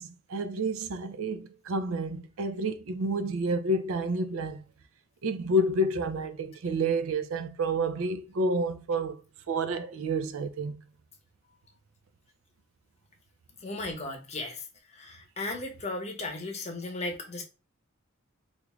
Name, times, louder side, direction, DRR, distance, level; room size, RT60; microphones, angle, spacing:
voice 1, 0.0-4.6 5.2-9.2 9.5-10.8, right 1 dB, 80° right, 0.4 m, -29 dB
voice 2, 13.6-17.4, left 2 dB, 30° left, 0.7 m, -36 dB
3.5 x 2.5 x 3.0 m
head